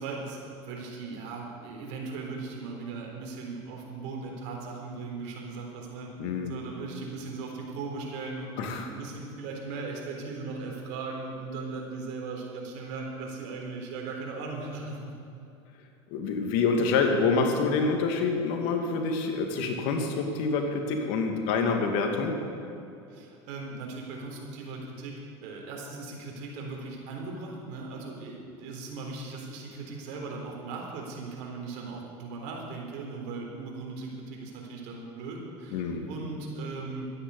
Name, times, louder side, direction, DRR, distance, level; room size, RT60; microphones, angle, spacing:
voice 1, 0.0-6.1 6.5-15.1 23.1-25.1 25.4-37.1, right 3 dB, 65° right, 0 dB, 3.9 m, -38 dB
voice 2, 6.2-6.5 8.6-8.9 16.1-22.3 35.7-36.1, left 4 dB, 65° left, 3 dB, 2.3 m, -27 dB
13.0 x 10.0 x 8.3 m, 2.7 s
supercardioid pair, 105°, 14 cm